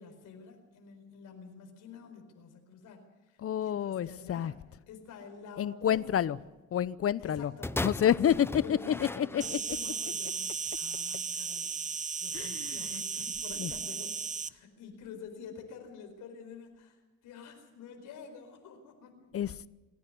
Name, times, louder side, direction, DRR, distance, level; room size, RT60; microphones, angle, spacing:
voice 1, 0.0-4.5 4.9-6.4 7.2-7.7 8.2-11.9 12.2-14.2 14.4-19.3, left 5 dB, 90° left, 5 dB, 4.6 m, -48 dB
voice 2, 3.4-4.5 5.6-6.4 6.7-7.5 7.8-8.3 8.7-9.4 12.3-13.0 13.6-13.7 19.3-19.7, left 9 dB, 50° left, 18 dB, 0.8 m, -29 dB
sound 1, 7.6-9.9 10.7-10.8, left 2 dB, 10° left, 0.6 m, -37 dB
Insect, 9.4-14.5, right 5 dB, 25° right, 0.8 m, -35 dB
27.0 x 10.5 x 9.7 m, 1.2 s
cardioid pair, 90°, 30 cm